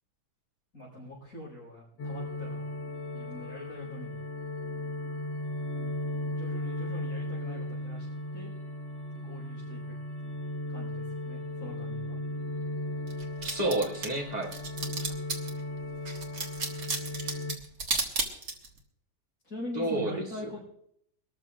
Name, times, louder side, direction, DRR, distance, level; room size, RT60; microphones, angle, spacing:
voice 1, 0.7-2.7 3.1-4.2 5.7-5.9 6.3-8.5 9.1-9.9 10.2-10.4 10.7-12.2 19.4-20.6, left 1 dB, 60° left, -6 dB, 5.7 m, -43 dB
sound 1, 2.0-17.6, left 1 dB, 80° left, 2.2 m, -36 dB
sound 2, 13.1-15.6 16.1-18.8, right 3 dB, 55° right, 2.2 m, -33 dB
voice 2, 13.4-14.5 19.7-20.1 20.4-20.6, right 1 dB, 25° right, -3 dB, 2.7 m, -30 dB
24.0 x 13.5 x 2.5 m, 0.71 s
omnidirectional pair, 1.8 m